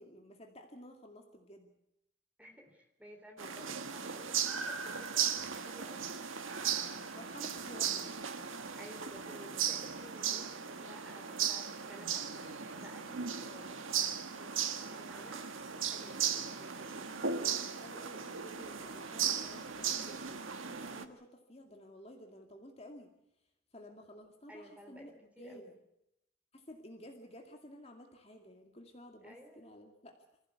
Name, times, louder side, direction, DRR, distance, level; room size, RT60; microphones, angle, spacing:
voice 1, 0.0-1.7 7.0-8.1 16.9-23.1 23.7-25.7 26.5-30.1, equal, 30° left, 3 dB, 2.2 m, -53 dB
voice 2, 2.4-6.1 8.7-17.1 17.6-17.8 24.5-25.7 29.2-29.6, equal, 5° right, 3 dB, 3.7 m, -55 dB
sound 1, 3.4-21.1, right 7 dB, 85° right, 1.5 m, -37 dB
25.5 x 15.5 x 8.4 m, 0.83 s
head